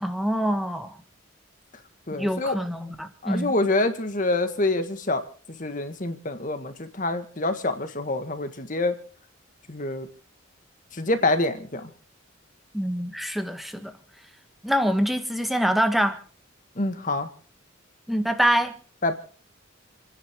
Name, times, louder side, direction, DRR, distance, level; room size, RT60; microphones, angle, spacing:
voice 1, 0.0-0.9 2.2-3.5 12.7-13.9 14.6-16.2 18.1-18.7, equal, ahead, 1.4 m, -25 dB
voice 2, 2.1-2.6 3.2-5.2 5.5-8.9 9.7-10.1 10.9-11.9 16.8-17.3 19.0-19.1, left 2 dB, 40° left, 1.7 m, -26 dB
29.5 x 10.0 x 3.7 m
head